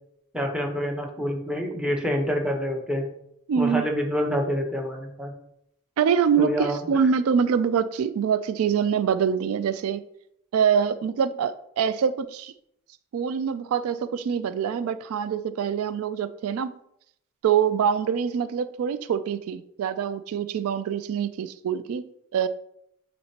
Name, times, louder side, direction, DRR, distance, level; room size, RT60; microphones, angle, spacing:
voice 1, 0.3-3.0 3.6-5.3 6.4-6.8, equal, 5° right, 1 dB, 0.8 m, -27 dB
voice 2, 3.5-3.8 6.0-10.0 10.5-12.5 13.1-16.7 17.4-22.0 22.3-22.5, right 7 dB, 80° right, 13 dB, 0.3 m, -24 dB
8.5 x 4.3 x 2.8 m, 0.76 s
head